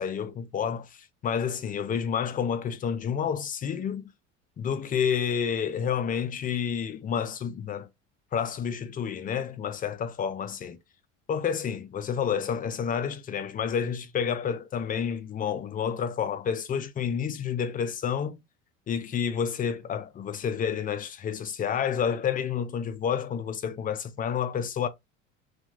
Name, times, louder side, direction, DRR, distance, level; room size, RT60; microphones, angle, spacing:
voice 1, 0.0-4.1 4.6-7.9 8.3-10.8 11.3-18.4 18.9-24.9, left 7 dB, 25° left, 0.4 m, -29 dB
2.8 x 2.4 x 2.4 m
hypercardioid pair, 70°, 37 cm